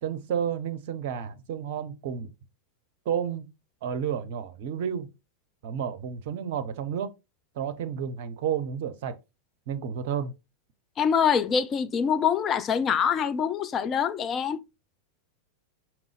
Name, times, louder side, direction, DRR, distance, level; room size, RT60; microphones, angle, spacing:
voice 1, 0.0-2.3 3.1-3.5 3.8-5.1 5.6-7.1 7.6-9.1 9.7-10.3, right 8 dB, 50° right, 0.6 m, -31 dB
voice 2, 11.0-14.6, left 7 dB, 25° left, 0.4 m, -25 dB
5.3 x 3.0 x 3.2 m
figure-of-eight pair, 90°, 0 cm